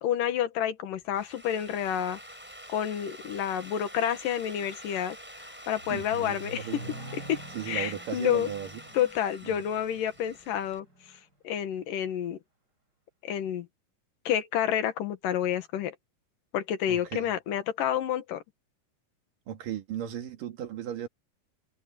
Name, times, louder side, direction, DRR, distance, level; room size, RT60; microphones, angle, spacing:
voice 1, 0.0-2.2 2.7-5.2 5.7-6.7 7.3-7.4 7.7-8.5 8.9-10.9 11.4-12.4 13.2-13.7 14.3-15.9 16.5-18.4, left 10 dB, 90° left, 3.2 m, -29 dB
Drill, 1.0-10.8, equal, 5° right, 4.6 m, -47 dB
Accelerating revving vroom, 5.2-11.2, right 1 dB, 30° right, 7.2 m, -46 dB
voice 2, 5.9-6.9 7.5-8.8 9.4-9.5 16.9-17.4 19.5-21.1, right 10 dB, 90° right, 3.7 m, -36 dB
omnidirectional pair, 3.7 m